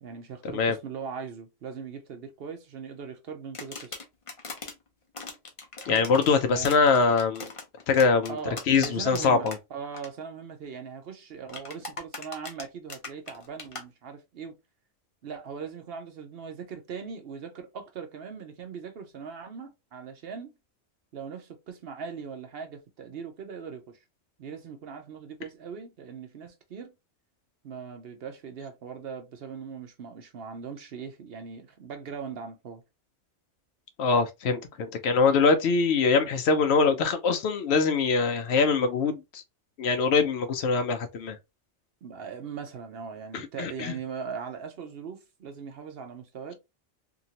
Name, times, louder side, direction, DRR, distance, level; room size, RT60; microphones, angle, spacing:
voice 1, 0.0-3.9 5.9-6.1 6.5-6.7 8.3-14.5 15.2-20.5 21.1-24.0 24.4-26.9 27.6-32.8 42.0-46.5, right 6 dB, 60° right, 0.8 m, -40 dB
sound 1, 3.5-4.7 5.1-9.6 9.8-10.1 11.5-13.8, left 3 dB, 35° left, 0.6 m, -40 dB
voice 2, 5.9-7.5 7.9-8.4 8.7-9.5 34.0-39.4 39.8-41.4 43.3-44.0, left 4 dB, 70° left, 0.8 m, -23 dB
2.8 x 2.6 x 2.8 m
omnidirectional pair, 1.2 m